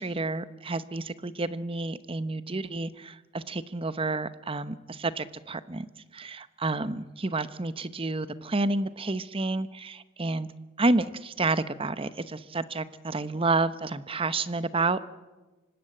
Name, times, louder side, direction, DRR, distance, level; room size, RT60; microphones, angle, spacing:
voice 1, 0.0-5.9 6.1-10.5 10.8-15.1, right 3 dB, 25° right, 14 dB, 0.8 m, -30 dB
25.0 x 19.0 x 8.8 m, 1.2 s
head